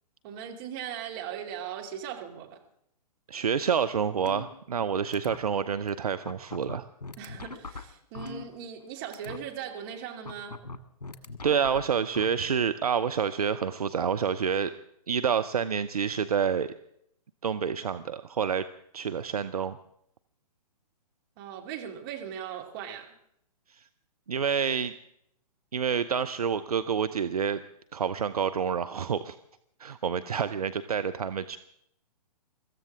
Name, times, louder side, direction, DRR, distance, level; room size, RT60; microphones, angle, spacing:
voice 1, 0.2-2.6 7.2-10.5 21.4-23.0, right 8 dB, 35° right, 1 dB, 2.6 m, -39 dB
voice 2, 3.3-6.9 11.4-14.7 15.1-16.7 17.4-18.6 18.9-19.8 24.3-24.9 25.7-27.6 27.9-29.4 29.8-31.6, right 7 dB, 65° right, 10 dB, 0.7 m, -28 dB
sound 1, 4.3-4.9 5.1-5.4 5.9-6.0 6.3-8.9 9.1-9.4 10.3-12.2, left 3 dB, 70° left, 1.4 m, -40 dB
24.0 x 14.0 x 3.7 m, 0.74 s
figure-of-eight pair, 120°, 21 cm